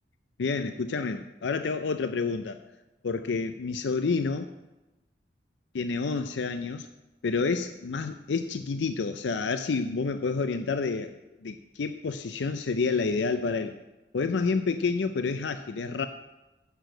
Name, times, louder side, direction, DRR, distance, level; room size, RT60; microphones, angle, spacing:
voice 1, 0.4-2.6 3.0-4.5 5.7-6.9 7.2-11.2 11.4-13.8 14.1-16.1, left 4 dB, 85° left, 9 dB, 0.5 m, -29 dB
7.8 x 6.8 x 7.8 m, 1.0 s
head